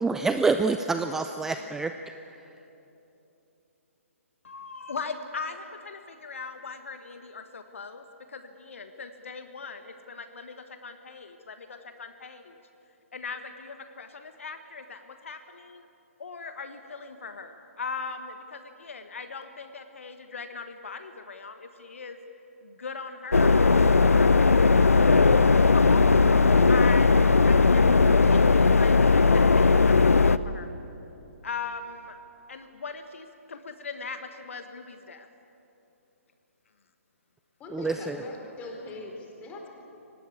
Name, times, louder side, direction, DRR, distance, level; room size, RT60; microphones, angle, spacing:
voice 1, 0.0-1.9 37.7-38.2, right 3 dB, 5° right, 8 dB, 0.5 m, -26 dB
voice 2, 4.4-12.6 13.1-15.9 16.2-22.2 22.6-25.1 25.7-30.8 31.4-32.2 32.5-35.3, left 4 dB, 65° left, 8 dB, 1.4 m, -40 dB
sound 1, 23.3-30.4, left 4 dB, 80° left, 0.7 m, -18 dB
voice 3, 37.6-39.7, left 3 dB, 15° left, 1 dB, 4.1 m, -41 dB
24.5 x 18.5 x 8.5 m, 3.0 s
figure-of-eight pair, 130°, 8 cm